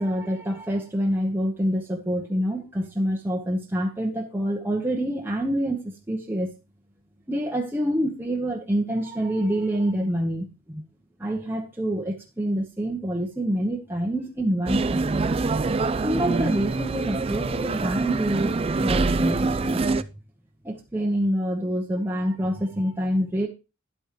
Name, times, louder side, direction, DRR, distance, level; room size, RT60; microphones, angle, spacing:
voice 1, 0.0-6.5 7.3-10.8 11.2-15.1 16.0-18.5 18.8-19.8 20.6-23.5, equal, 10° right, 0.9 m, -26 dB
sound 1, 14.7-20.0, right 3 dB, 25° right, 0.4 m, -25 dB
11.0 x 8.6 x 3.0 m
head